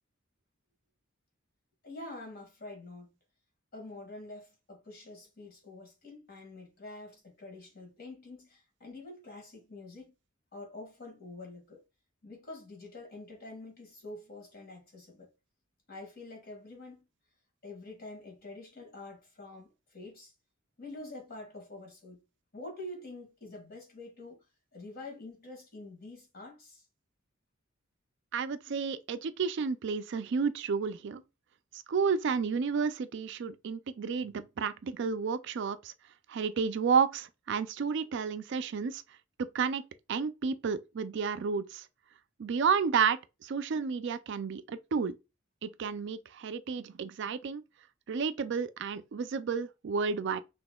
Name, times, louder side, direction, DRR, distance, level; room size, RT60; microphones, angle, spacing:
voice 1, 1.8-3.1 3.7-10.1 10.5-11.8 12.2-15.3 15.9-17.0 17.6-20.3 20.8-22.2 22.5-24.4 24.7-26.8 28.7-28.8, left 2 dB, 50° left, 1.9 m, -46 dB
voice 2, 28.3-31.2 31.7-35.9 36.3-39.0 39.4-39.8 40.1-41.9 42.4-45.2 45.6-47.6 48.1-50.4, right 6 dB, 60° right, 0.4 m, -31 dB
6.0 x 3.0 x 2.3 m
head